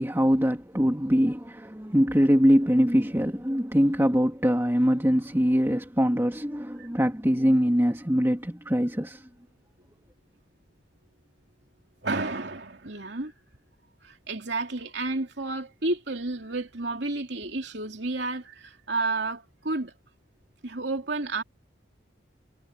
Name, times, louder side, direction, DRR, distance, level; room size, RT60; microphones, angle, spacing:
voice 1, 0.0-9.3, equal, 15° right, 2.7 m, -23 dB
voice 2, 12.0-13.3 14.0-19.9 20.6-21.4, right 3 dB, 65° right, 3.1 m, -31 dB
head